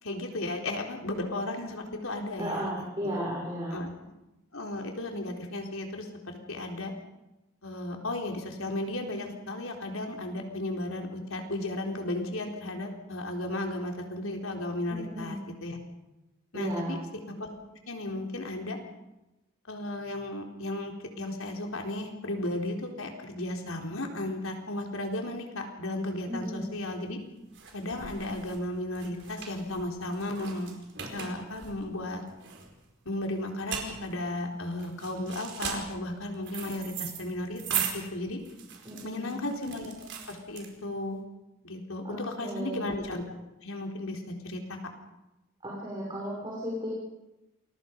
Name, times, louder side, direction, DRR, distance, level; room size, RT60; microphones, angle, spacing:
voice 1, 0.0-3.2 3.7-3.9 4.5-6.9 7.6-15.8 16.5-17.0 17.4-17.5 17.9-18.8 19.7-27.2 27.7-30.7 31.1-32.2 33.1-38.4 39.0-39.9 40.3-41.2 41.6-43.2 43.6-44.8, left 1 dB, 85° left, 2 dB, 4.1 m, -35 dB
voice 2, 2.4-3.8 14.9-15.4 16.5-17.0 26.3-26.7 38.8-39.4 42.0-42.8 45.6-46.9, equal, 25° right, -5 dB, 6.4 m, -35 dB
sound 1, 26.7-41.1, right 8 dB, 55° right, 4.7 m, -39 dB
28.5 x 21.5 x 5.4 m, 0.98 s
head